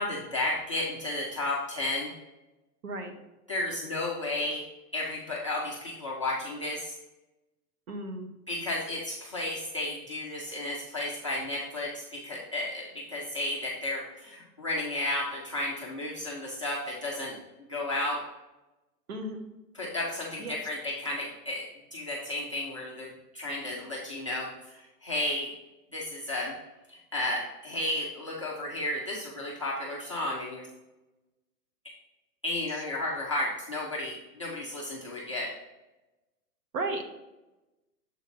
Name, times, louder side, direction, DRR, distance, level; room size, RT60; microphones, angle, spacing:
voice 1, 0.0-2.1 3.5-4.6 4.9-6.9 8.5-18.2 19.7-21.6 21.9-25.5 25.9-26.5 26.9-30.7 32.4-35.5, left 1 dB, 20° left, -6 dB, 0.4 m, -33 dB
voice 2, 7.9-8.3 19.1-19.4 20.4-20.6 36.7-37.0, right 2 dB, 55° right, 5 dB, 1.3 m, -34 dB
7.1 x 4.0 x 4.2 m, 1.0 s
hypercardioid pair, 160°, 49 cm